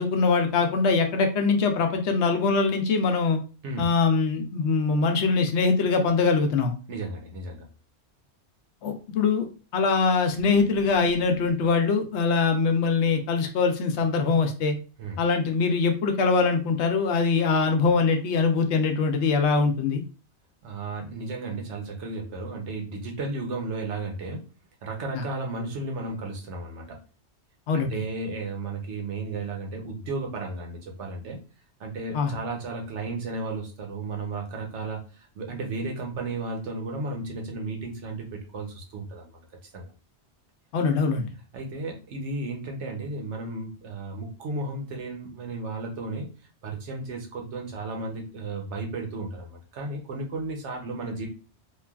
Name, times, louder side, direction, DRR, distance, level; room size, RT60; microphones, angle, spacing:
voice 1, 0.0-3.4 3.8-6.7 8.8-9.5 9.7-14.7 15.2-20.0 27.7-28.0 32.1-32.3 40.7-41.3, left 4 dB, 80° left, 5 dB, 0.9 m, -23 dB
voice 2, 6.9-7.6 15.0-15.2 20.6-24.5 24.8-27.0 27.7-31.4 31.8-39.4 39.7-39.9 41.5-46.3 46.6-51.3, right 3 dB, 80° right, 2 dB, 1.1 m, -34 dB
3.2 x 2.3 x 2.3 m, 0.35 s
omnidirectional pair, 1.2 m